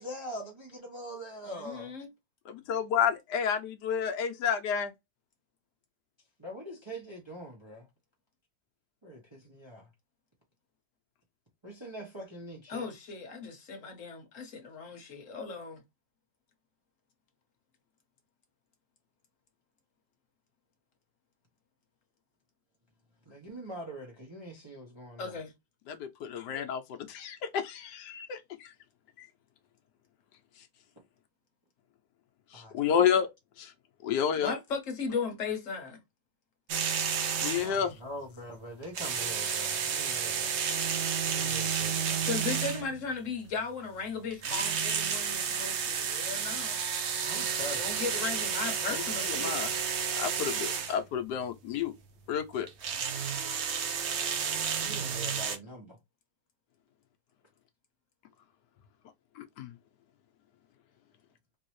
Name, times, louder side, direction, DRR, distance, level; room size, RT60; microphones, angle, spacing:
voice 1, 0.0-1.9 6.4-7.9 9.0-9.8 11.6-12.9 23.3-25.4 32.5-32.9 37.5-40.6 41.2-42.3 47.3-47.9 54.8-56.0, equal, 25° right, 0.6 m, -43 dB
voice 2, 1.4-2.1 12.7-15.8 25.2-25.5 34.4-36.0 42.2-46.8 47.7-49.6, left 5 dB, 55° left, 1.2 m, -36 dB
voice 3, 2.5-4.9 25.9-28.7 29.2-29.3 32.5-33.3 33.6-33.7 34.0-34.5 37.4-37.9 48.9-49.0 49.4-49.7 50.1-51.9 52.3-52.7 59.4-59.7, left 8 dB, 80° left, 1.2 m, -30 dB
sound 1, 36.7-37.8 38.8-43.0 44.3-51.0 52.7-55.6, right 7 dB, 75° right, 0.6 m, -31 dB
3.8 x 2.7 x 3.0 m
omnidirectional pair, 1.8 m